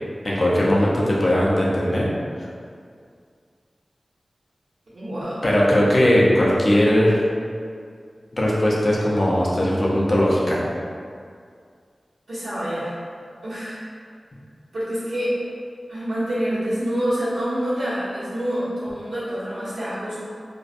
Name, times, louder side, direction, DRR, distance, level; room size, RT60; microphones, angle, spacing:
voice 1, 0.2-2.1 5.4-7.2 8.3-10.6, equal, 40° left, -5 dB, 0.5 m, -19 dB
voice 2, 4.9-5.4 12.3-12.9 13.4-13.8 14.7-15.3 15.9-20.2, equal, 85° right, -12 dB, 1.1 m, -26 dB
2.5 x 2.1 x 2.5 m, 2.2 s
wide cardioid pair, 70°, 0 cm